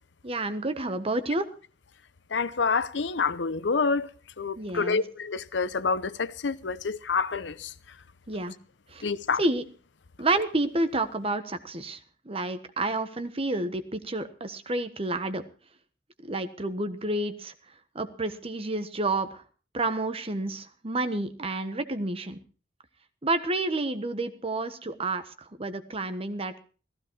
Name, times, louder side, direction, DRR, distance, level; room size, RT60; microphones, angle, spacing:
voice 1, 0.2-1.5 4.6-5.0 8.3-8.5 8.9-9.0 9.4-9.6 10.2-12.0 12.2-15.4 16.2-17.5 17.9-19.4 19.7-22.4 23.2-26.6, right 2 dB, 35° right, 1.3 m, -29 dB
voice 2, 2.3-4.1 4.4-7.7 9.0-9.4, left 4 dB, 90° left, 0.8 m, -27 dB
15.5 x 15.0 x 4.6 m
head